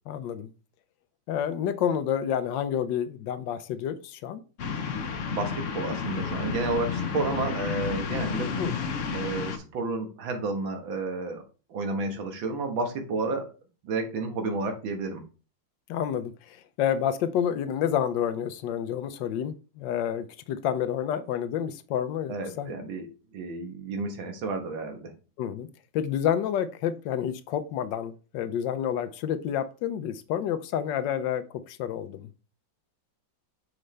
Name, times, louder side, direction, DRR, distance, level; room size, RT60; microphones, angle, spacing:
voice 1, 0.1-0.5 1.3-4.4 8.6-8.7 15.9-22.7 25.4-25.7 25.9-32.3, left 9 dB, 75° left, 1.3 m, -29 dB
sound 1, 4.6-9.6, left 6 dB, 55° left, 0.9 m, -31 dB
voice 2, 5.3-8.5 9.1-11.4 11.7-13.5 13.8-15.2 22.3-23.1 23.3-25.1, right 3 dB, 90° right, 2.0 m, -31 dB
6.5 x 4.9 x 3.3 m
omnidirectional pair, 2.1 m